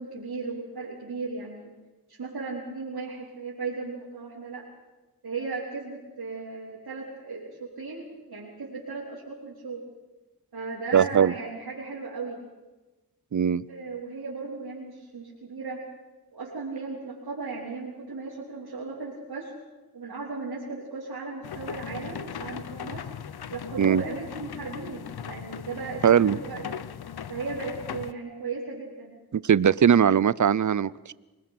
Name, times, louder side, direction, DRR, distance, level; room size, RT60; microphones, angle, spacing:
voice 1, 0.0-1.7 2.1-4.6 5.2-9.8 10.5-12.4 13.7-15.8 16.3-19.5 19.9-23.1 23.5-26.8 27.3-29.2, right 4 dB, 80° right, -7 dB, 4.4 m, -36 dB
voice 2, 10.9-11.3 13.3-13.6 23.8-24.0 26.0-26.4 29.3-31.1, right 8 dB, 50° right, 20 dB, 0.7 m, -20 dB
sound 1, 21.4-28.1, left 8 dB, 75° left, 0.8 m, -38 dB
25.5 x 20.0 x 6.0 m, 1.1 s
cardioid pair, 50°, 38 cm